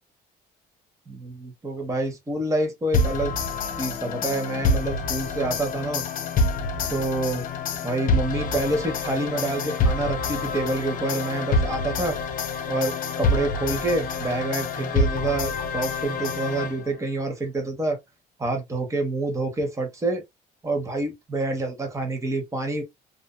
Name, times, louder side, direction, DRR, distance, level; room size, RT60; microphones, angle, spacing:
voice 1, 1.1-3.3 3.8-6.0 6.9-7.4 7.8-12.2 12.7-18.0 18.4-20.2 20.6-22.8, right 2 dB, 20° right, 1.1 m, -27 dB
sound 1, 2.9-17.1, left 3 dB, 55° left, 0.7 m, -27 dB
2.7 x 2.6 x 2.2 m
cardioid pair, 110°, 17 cm